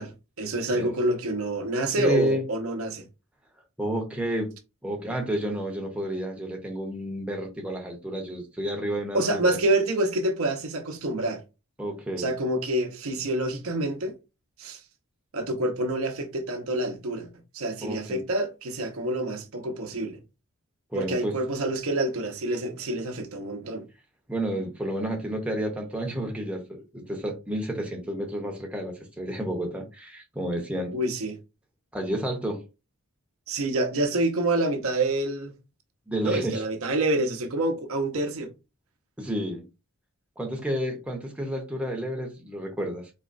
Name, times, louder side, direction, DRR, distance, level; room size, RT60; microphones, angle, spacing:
voice 1, 0.0-3.0 9.1-11.4 12.2-14.1 14.6-14.8 15.3-17.3 17.5-20.2 20.9-23.9 30.9-31.4 33.5-35.5 36.2-38.5, right 2 dB, 70° right, 0.7 m, -27 dB
voice 2, 2.0-2.4 3.8-4.5 4.8-9.6 11.8-12.3 17.8-18.2 20.9-21.3 24.3-31.0 31.9-32.6 36.1-36.6 39.2-39.6 40.4-43.1, right 1 dB, 5° right, 0.7 m, -30 dB
4.1 x 2.9 x 2.5 m
head